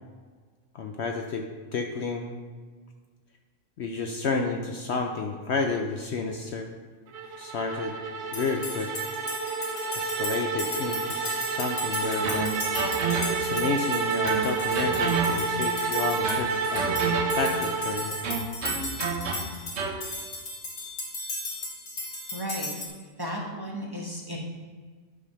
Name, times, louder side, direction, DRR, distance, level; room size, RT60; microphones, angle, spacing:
voice 1, 0.7-1.5 1.7-2.4 3.8-6.7 7.4-7.9 8.3-8.9 10.0-12.5 13.4-17.1 17.4-18.2, left 4 dB, 60° left, 3 dB, 0.8 m, -31 dB
sound 1, 7.1-18.5, right 4 dB, 80° right, 1.2 m, -29 dB
sound 2, 8.3-22.9, left 2 dB, 75° left, 1.8 m, -36 dB
sound 3, 12.2-13.6 14.2-15.7 16.2-17.6 18.2-20.1, right 5 dB, 60° right, 1.0 m, -31 dB
voice 2, 22.3-22.7 23.2-24.4, equal, 20° right, -3 dB, 1.0 m, -34 dB
10.0 x 3.5 x 5.6 m, 1.5 s
omnidirectional pair, 1.4 m